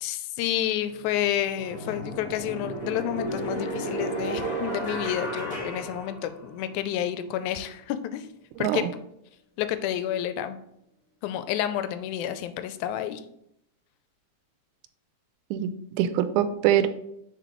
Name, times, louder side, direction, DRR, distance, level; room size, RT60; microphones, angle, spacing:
voice 1, 0.0-8.3 8.6-8.9 9.6-10.6 11.2-13.2, left 11 dB, 85° left, 11 dB, 1.9 m, -30 dB
sound 1, 0.8-0.9 1.5-6.7, right 1 dB, 15° left, 2.1 m, -33 dB
voice 2, 8.6-8.9 15.5-16.9, right 11 dB, 90° right, 11 dB, 2.0 m, -24 dB
6.9 x 4.6 x 3.0 m, 0.77 s
omnidirectional pair, 3.4 m